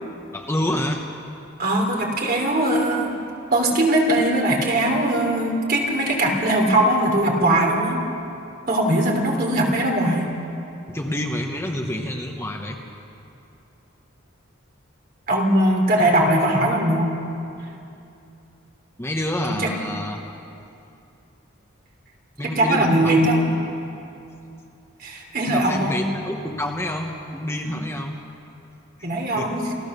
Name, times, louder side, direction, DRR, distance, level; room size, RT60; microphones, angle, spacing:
voice 1, 0.3-1.1 10.9-12.8 19.0-20.2 22.4-23.3 25.5-28.2 29.0-29.1 29.4-29.5, left 1 dB, 15° left, 2 dB, 1.1 m, -28 dB
voice 2, 1.6-3.1 3.5-8.0 8.7-10.2 15.3-17.1 19.5-19.7 22.4-23.5 25.0-26.0 27.6-27.7 29.0-29.7, right 1 dB, 45° right, 1 dB, 3.3 m, -20 dB
28.5 x 14.5 x 6.8 m, 2.7 s
head